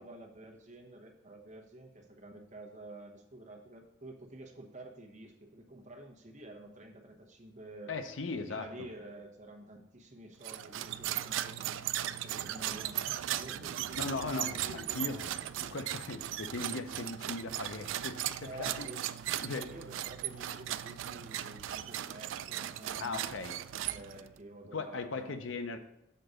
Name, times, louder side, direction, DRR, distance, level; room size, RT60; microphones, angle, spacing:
voice 1, 0.0-7.9 8.3-15.5 18.4-19.1 19.6-23.1 23.8-25.4, right 1 dB, 40° right, 2 dB, 1.0 m, -50 dB
voice 2, 7.9-8.9 14.0-15.3 15.6-18.9 19.4-19.7 23.0-23.6 24.7-25.8, left 3 dB, 85° left, 8 dB, 0.7 m, -38 dB
sound 1, 10.4-24.4, right 12 dB, 80° right, 0.3 m, -37 dB
6.6 x 3.9 x 6.4 m, 0.84 s
head